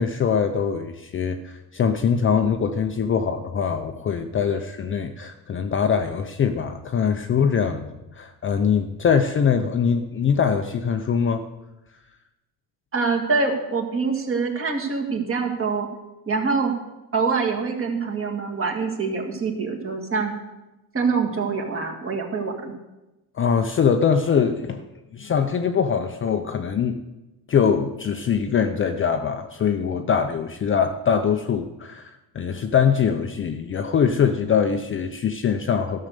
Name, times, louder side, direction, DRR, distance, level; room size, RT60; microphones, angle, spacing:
voice 1, 0.0-11.4 23.4-24.8 25.1-27.0 27.5-36.1, left 7 dB, 30° left, 6 dB, 0.6 m, -23 dB
voice 2, 12.9-15.9 16.3-16.7 17.1-20.3 20.9-22.7, right 4 dB, 30° right, 2 dB, 2.1 m, -25 dB
13.0 x 6.6 x 6.7 m, 1.0 s
cardioid pair, 125°, 44 cm